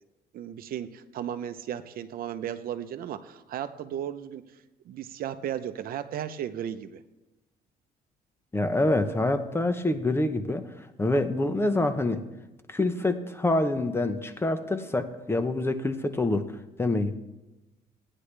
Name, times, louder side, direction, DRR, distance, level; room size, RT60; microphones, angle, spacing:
voice 1, 0.3-4.4 4.9-7.0, right 10 dB, 60° right, 11 dB, 0.7 m, -35 dB
voice 2, 8.5-10.7 11.0-12.2 12.7-16.5 16.8-17.2, left 2 dB, 15° left, 9 dB, 0.8 m, -26 dB
16.5 x 9.9 x 3.3 m, 1.0 s
cardioid pair, 110°, 17 cm